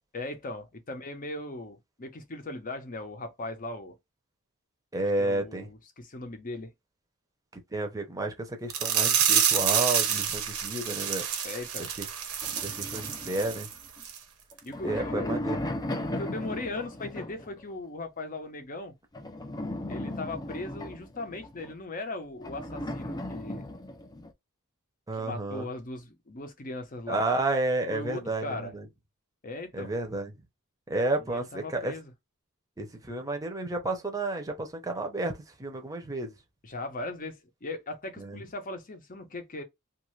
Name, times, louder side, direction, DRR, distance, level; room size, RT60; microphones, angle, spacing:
voice 1, 0.1-4.0 5.2-6.7 11.4-11.9 14.7-15.4 16.0-19.0 19.9-23.7 25.1-27.2 27.9-28.7 29.4-29.9 31.3-32.1 36.6-39.6, left 2 dB, 40° left, 0.8 m, -38 dB
voice 2, 4.9-5.7 7.5-11.2 12.0-12.1 12.6-13.7 14.8-15.6 25.1-25.7 27.1-28.9 29.7-30.3 30.9-31.9 32.8-35.3 35.6-36.3 38.2-38.4, right 2 dB, 15° right, 0.8 m, -31 dB
sound 1, 8.7-13.7 14.0-14.2 14.6-14.7, right 8 dB, 80° right, 0.9 m, -28 dB
sound 2, 12.4-14.0 14.5-17.6 19.1-21.7 22.4-24.3, left 1 dB, 20° left, 0.4 m, -36 dB
2.7 x 2.6 x 3.1 m
head